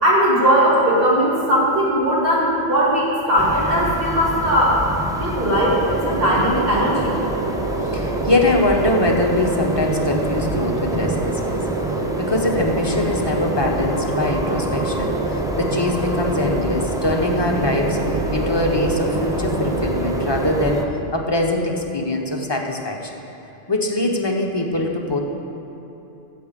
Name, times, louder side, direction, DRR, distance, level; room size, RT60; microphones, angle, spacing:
voice 1, 0.0-4.8 5.2-7.1, equal, 55° right, -6 dB, 2.9 m, -18 dB
sound 1, 3.4-20.9, right 1 dB, 5° right, 0.6 m, -28 dB
sound 2, 5.3-20.8, right 3 dB, 90° right, 1.3 m, -27 dB
voice 2, 7.9-11.6 12.2-18.0 18.3-23.1 23.7-25.2, left 2 dB, 25° left, 0 dB, 1.1 m, -22 dB
15.5 x 7.3 x 5.3 m, 3.0 s
omnidirectional pair, 1.2 m